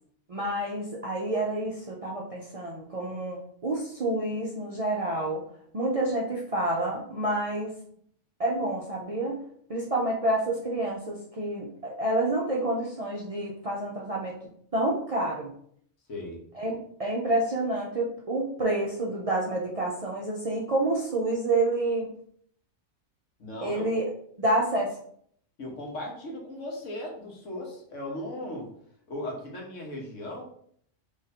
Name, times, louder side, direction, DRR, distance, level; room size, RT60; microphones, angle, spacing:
voice 1, 0.3-5.4 5.7-7.7 8.4-9.4 9.7-14.3 14.7-15.5 16.5-22.1 23.6-24.0 24.4-24.9, right 1 dB, 50° right, -3 dB, 0.4 m, -28 dB
voice 2, 16.1-16.4 23.4-23.9 25.6-28.7 29.1-30.4, left 1 dB, 80° left, -1 dB, 1.4 m, -37 dB
3.0 x 2.6 x 4.1 m, 0.63 s
omnidirectional pair, 1.3 m